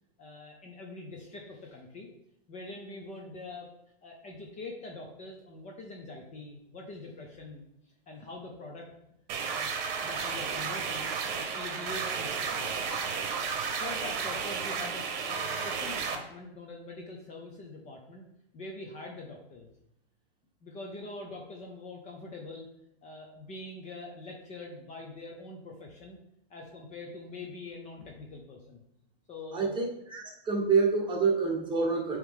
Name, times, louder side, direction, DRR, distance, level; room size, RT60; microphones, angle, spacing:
voice 1, 0.2-2.1 2.5-3.7 4.0-8.9 9.4-9.7 10.0-12.8 13.8-18.2 18.5-19.7 20.6-22.7 23.0-26.2 26.5-28.8 29.3-29.8, left 2 dB, 25° left, 1 dB, 0.8 m, -44 dB
sound 1, 9.3-16.2, right 6 dB, 45° right, 1.1 m, -33 dB
voice 2, 29.5-32.2, right 4 dB, 15° right, -1 dB, 1.3 m, -27 dB
8.3 x 3.2 x 3.7 m, 0.79 s
hypercardioid pair, 130°, 31 cm